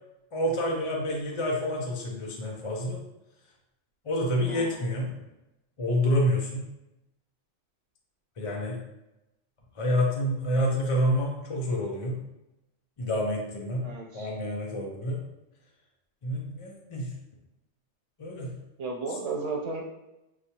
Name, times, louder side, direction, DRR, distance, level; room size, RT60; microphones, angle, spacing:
voice 1, 0.3-3.0 4.0-5.1 5.8-6.6 8.4-8.8 9.7-12.2 13.0-13.9 14.1-15.2 16.2-17.1 18.2-18.6, equal, 35° left, -1 dB, 0.5 m, -28 dB
voice 2, 4.4-4.9 13.8-14.3 18.8-19.8, right 3 dB, 80° right, -1 dB, 1.2 m, -34 dB
6.6 x 2.4 x 2.8 m, 0.93 s
omnidirectional pair, 1.2 m